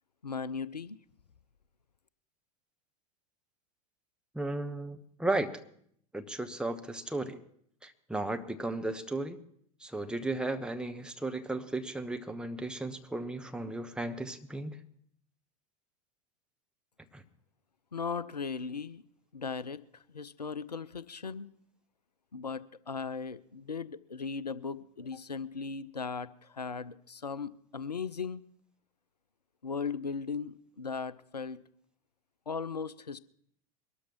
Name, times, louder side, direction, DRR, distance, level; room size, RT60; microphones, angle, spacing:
voice 1, 0.2-1.0 17.9-19.0 19.3-21.5 22.3-28.4 29.6-31.6 32.5-33.2, left 5 dB, 90° left, 18 dB, 0.4 m, -37 dB
voice 2, 4.3-5.5 6.1-7.4 7.8-9.4 9.8-14.8 17.1-17.2, right 2 dB, 5° right, 6 dB, 1.0 m, -35 dB
23.0 x 13.0 x 3.0 m, 0.66 s
figure-of-eight pair, 80°, 20 cm